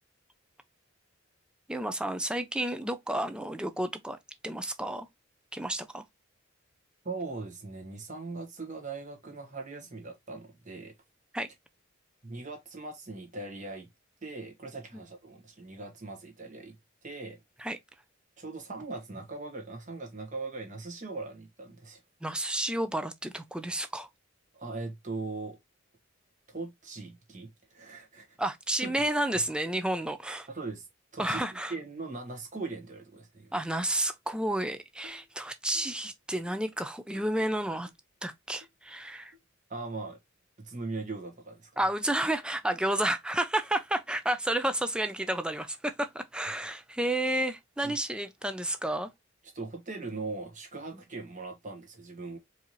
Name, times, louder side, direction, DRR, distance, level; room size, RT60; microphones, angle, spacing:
voice 1, 1.7-4.2 4.4-5.1 5.5-6.0 11.3-11.5 14.9-15.0 17.6-17.8 22.2-24.1 28.4-30.5 31.2-31.7 33.5-37.9 38.2-39.3 41.8-49.1, right 1 dB, 5° right, 0.4 m, -31 dB
voice 2, 7.0-10.9 12.2-13.9 14.2-16.7 17.0-17.4 18.4-22.0 24.5-25.6 26.5-28.4 28.8-28.9 30.5-30.9 31.1-31.4 31.7-33.5 39.7-40.2 40.6-41.8 47.8-48.0 49.5-52.4, right 3 dB, 40° right, 1.2 m, -40 dB
sound 1, 35.0-35.3 35.7-36.0 36.5-36.7 37.1-37.4 37.9-38.0 38.6-38.7 39.3-39.4 40.1-40.2 40.8-41.0, left 3 dB, 75° right, 1.1 m, -57 dB
4.6 x 2.8 x 2.9 m
head